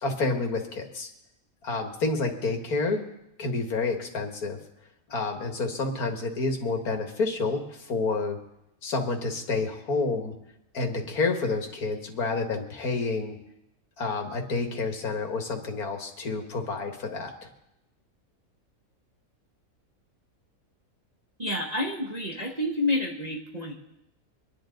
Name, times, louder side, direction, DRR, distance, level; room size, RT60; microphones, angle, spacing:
voice 1, 0.0-1.1 1.6-3.0 3.4-4.6 5.1-8.4 8.8-10.3 10.7-13.4 14.0-17.5, left 3 dB, 90° left, 3 dB, 2.2 m, -29 dB
voice 2, 21.4-23.7, left 1 dB, 30° right, -1 dB, 1.4 m, -29 dB
25.0 x 10.5 x 3.9 m, 0.85 s
omnidirectional pair, 1.5 m